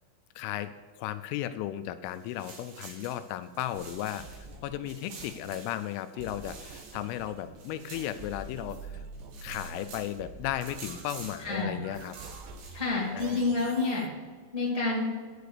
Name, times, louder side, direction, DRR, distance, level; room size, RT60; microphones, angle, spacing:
voice 1, 0.4-0.7 1.0-9.0 9.4-12.2 13.1-13.4, left 12 dB, 85° left, 11 dB, 3.0 m, -35 dB
sound 1, 2.0-4.5 4.9-8.8 9.1-10.2 10.6-11.5 11.9-13.1, right 4 dB, 65° right, 3.9 m, -49 dB
sound 2, 3.7-14.1, right 5 dB, 85° right, 3.3 m, -47 dB
voice 2, 11.4-11.8 12.7-14.1 14.5-15.1, left 3 dB, 10° right, -6 dB, 1.9 m, -28 dB
11.0 x 6.6 x 6.7 m, 1.6 s
omnidirectional pair, 5.9 m